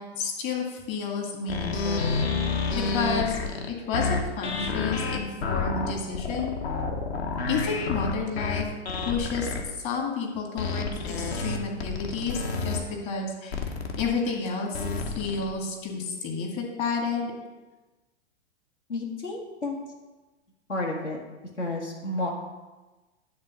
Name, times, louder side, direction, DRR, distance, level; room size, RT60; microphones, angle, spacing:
voice 1, 0.0-3.4 3.7-6.6 7.5-8.6 9.0-9.5 9.8-12.4 12.6-13.7 14.0-14.9 15.2-17.3, left 5 dB, 40° left, 0 dB, 2.1 m, -31 dB
sound 1, 1.5-9.6 10.6-12.8 13.5-14.0 14.7-15.5, left 4 dB, 65° left, 1.3 m, -29 dB
voice 2, 18.9-19.8 20.7-21.2 21.6-22.3, left 2 dB, 85° left, -2 dB, 1.7 m, -31 dB
10.0 x 3.8 x 6.1 m, 1.2 s
figure-of-eight pair, 105°, 34 cm